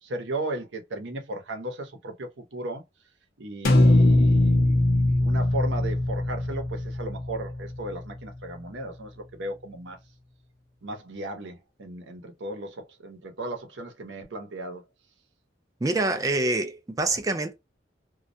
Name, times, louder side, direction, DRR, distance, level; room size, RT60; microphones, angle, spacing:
voice 1, 0.0-2.8 3.4-10.0 10.8-14.8, right 1 dB, 85° right, 0.8 m, -36 dB
sound 1, 3.6-7.9, left 1 dB, 50° left, 0.6 m, -21 dB
voice 2, 15.8-17.6, right 2 dB, 20° right, 0.4 m, -26 dB
2.3 x 2.1 x 2.6 m
head